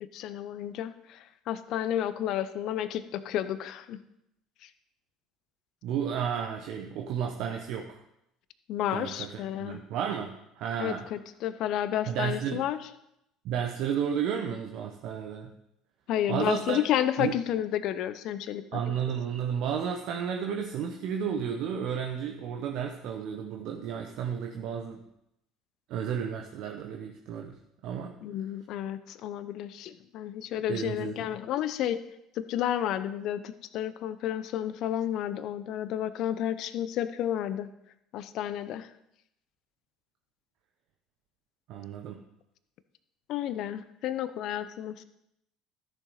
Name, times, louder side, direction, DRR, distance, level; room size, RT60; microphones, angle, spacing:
voice 1, 0.0-4.0 4.6-4.7 8.7-9.8 10.8-12.8 16.1-18.8 28.2-32.0 32.4-37.7 38.1-38.9 43.3-45.0, left 11 dB, 60° left, 13 dB, 0.7 m, -31 dB
voice 2, 5.8-8.0 8.9-11.1 12.1-12.6 13.4-15.5 16.3-16.8 17.2-17.3 18.7-25.0 25.9-27.6 27.8-28.2 30.7-31.2 41.7-42.2, right 8 dB, 60° right, 3 dB, 0.9 m, -32 dB
14.0 x 6.7 x 4.1 m, 0.81 s
hypercardioid pair, 65°, 0 cm